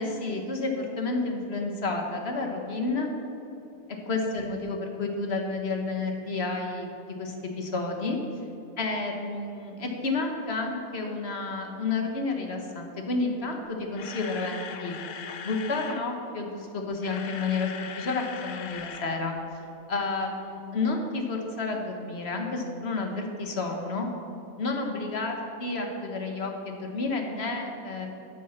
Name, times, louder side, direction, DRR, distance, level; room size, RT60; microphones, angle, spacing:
voice 1, 0.0-3.1 4.1-6.9 7.2-8.2 8.8-14.9 15.4-19.3 19.9-24.1 24.6-28.1, left 3 dB, 40° left, 2 dB, 1.7 m, -30 dB
Camera, 13.8-16.1 16.8-19.1 19.4-19.5 20.0-20.1, left 7 dB, 90° left, 1.5 m, -40 dB
14.5 x 8.3 x 5.9 m, 2.9 s
omnidirectional pair, 1.8 m